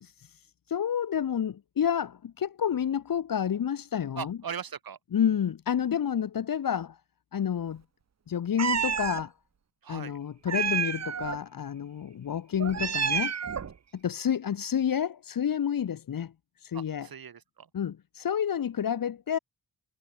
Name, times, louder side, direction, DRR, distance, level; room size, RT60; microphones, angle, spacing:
voice 1, 0.0-4.4 5.1-7.0 7.3-7.8 8.3-9.3 9.9-13.3 13.9-16.3 16.6-17.1 17.7-19.4, left 8 dB, 55° left, 1.3 m, -29 dB
voice 2, 4.2-5.0 9.8-10.2 16.7-17.7, right 7 dB, 60° right, 3.9 m, -39 dB
Meow, 8.6-9.2 10.5-11.4 12.6-13.7, right 7 dB, 40° right, 1.2 m, -29 dB
cardioid pair, 75°, 40 cm